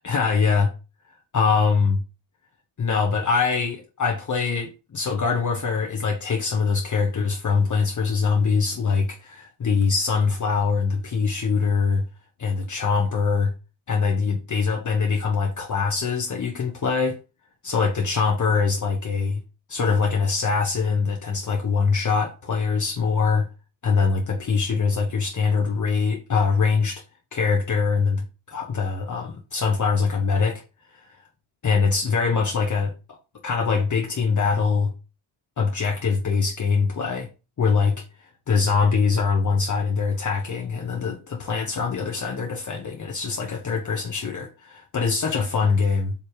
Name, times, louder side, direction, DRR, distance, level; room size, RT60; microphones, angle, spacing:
voice 1, 0.0-0.7 1.3-2.0 2.8-12.0 12.4-13.5 13.9-17.2 17.6-19.4 19.7-23.5 23.8-27.0 27.3-30.6 31.6-33.2 33.4-34.9 35.6-37.3 37.6-38.0 38.5-46.1, left 5 dB, 40° left, 1.3 m, -23 dB
7.5 x 3.3 x 4.9 m
cardioid pair, 115°, 48 cm